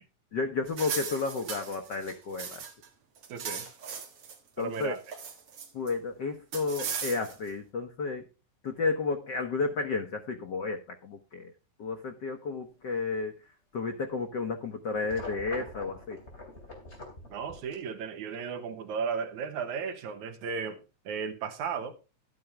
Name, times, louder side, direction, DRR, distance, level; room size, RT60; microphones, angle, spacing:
voice 1, 0.3-2.6 4.6-4.9 5.7-8.2 8.6-11.5 11.8-13.3 13.7-16.2, left 4 dB, 85° left, 0.9 m, -32 dB
sound 1, 0.7-2.9 3.2-4.4 4.7-5.9 6.5-7.5, right 6 dB, 55° right, 2.5 m, -38 dB
voice 2, 3.3-3.7 4.6-5.0 17.3-21.9, right 6 dB, 75° right, 2.6 m, -35 dB
sound 2, 14.9-17.7, left 2 dB, 20° left, 3.2 m, -44 dB
12.5 x 9.3 x 3.4 m
omnidirectional pair, 3.4 m